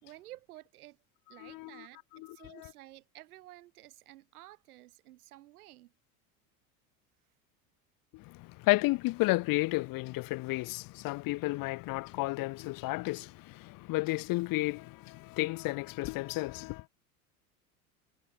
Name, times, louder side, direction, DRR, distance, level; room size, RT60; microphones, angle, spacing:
voice 1, 0.0-1.0 1.3-5.9, right 16 dB, 80° right, 5.1 m, -53 dB
voice 2, 1.4-1.8 2.1-2.7 8.1-16.8, left 21 dB, 50° left, 1.0 m, -32 dB
hypercardioid pair, 100°, 43 cm